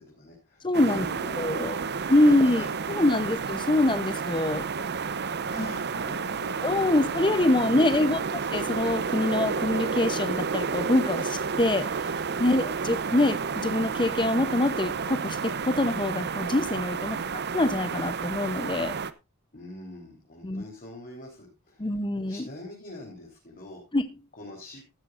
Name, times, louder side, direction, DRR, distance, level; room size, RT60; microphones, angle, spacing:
voice 1, 0.0-2.0 4.5-8.3 12.4-13.0 17.1-17.4 19.5-22.0 22.3-23.8 24.4-24.8, left 1 dB, 40° left, 4.1 m, -45 dB
voice 2, 0.6-1.0 1.4-1.8 2.1-2.6 2.9-4.6 5.6-5.7 6.6-17.2 17.5-18.9 20.4-20.6 21.8-22.5 23.9-24.1, left 1 dB, 20° left, 0.8 m, -25 dB
sound 1, 0.7-19.1, right 5 dB, 50° right, 0.8 m, -31 dB
15.0 x 12.5 x 2.6 m
head